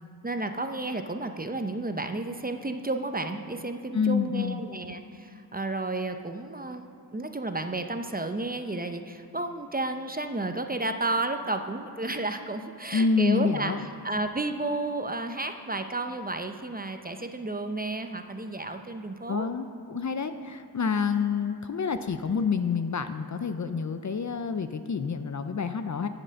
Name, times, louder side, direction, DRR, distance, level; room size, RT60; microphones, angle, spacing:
voice 1, 0.2-6.9 7.1-19.5, right 2 dB, 20° right, 7 dB, 0.7 m, -32 dB
voice 2, 3.9-4.6 12.9-13.8 19.3-26.1, left 5 dB, 45° left, 9 dB, 0.5 m, -28 dB
7.9 x 7.6 x 6.4 m, 2.7 s
cardioid pair, 40°, 41 cm